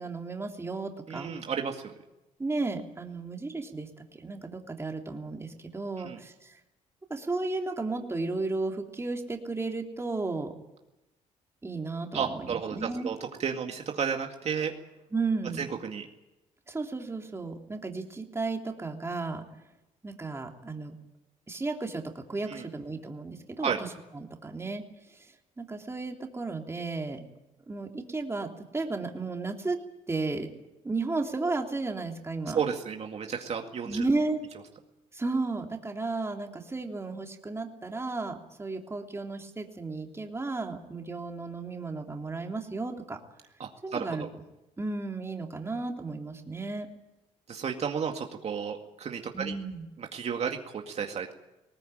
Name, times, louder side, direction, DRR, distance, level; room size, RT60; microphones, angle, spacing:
voice 1, 0.0-1.3 2.4-6.6 7.1-10.5 11.6-13.1 15.1-15.7 16.7-19.4 20.0-20.9 21.5-23.7 24.1-24.8 25.1-27.2 27.7-29.8 30.1-30.5 30.8-32.6 33.9-34.4 35.1-43.2 43.8-44.3 44.8-46.9 49.3-49.9, right 3 dB, 20° right, 2 dB, 3.1 m, -34 dB
voice 2, 1.1-1.9 6.0-6.2 12.1-14.7 15.6-16.1 22.5-22.7 23.6-23.8 32.5-34.0 43.6-44.3 47.5-49.6 50.0-51.3, right 6 dB, 50° right, 3 dB, 2.1 m, -32 dB
20.0 x 19.0 x 9.2 m, 0.95 s
cardioid pair, 95°, 14 cm